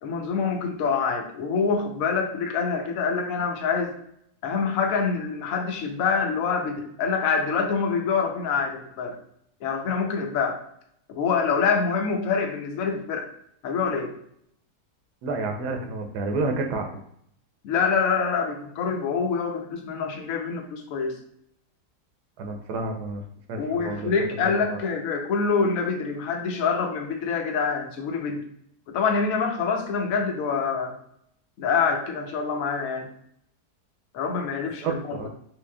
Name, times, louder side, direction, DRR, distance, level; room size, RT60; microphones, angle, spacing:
voice 1, 0.0-3.9 4.4-9.2 9.6-10.6 11.1-13.3 13.6-14.1 17.6-21.2 23.6-28.5 28.9-31.0 31.6-33.1 34.1-35.3, left 5 dB, 65° left, 3 dB, 1.0 m, -26 dB
voice 2, 15.2-16.9 22.4-23.2 23.5-24.1 24.4-24.8 34.8-35.3, right 3 dB, 80° right, 4 dB, 1.1 m, -30 dB
4.1 x 3.1 x 2.2 m, 0.70 s
omnidirectional pair, 1.7 m